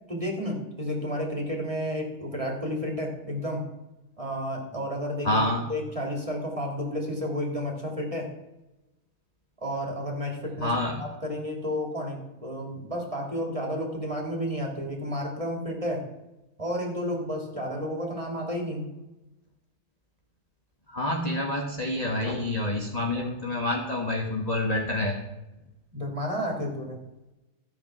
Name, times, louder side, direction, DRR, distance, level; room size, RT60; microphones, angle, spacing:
voice 1, 0.1-3.7 4.2-8.3 9.6-10.7 11.0-16.1 16.6-18.9 25.9-27.0, equal, 15° right, 0 dB, 2.9 m, -31 dB
voice 2, 5.2-5.6 10.6-11.0 20.9-25.2, left 1 dB, 20° left, 0 dB, 1.2 m, -27 dB
14.0 x 8.4 x 6.1 m, 0.99 s
omnidirectional pair, 2.4 m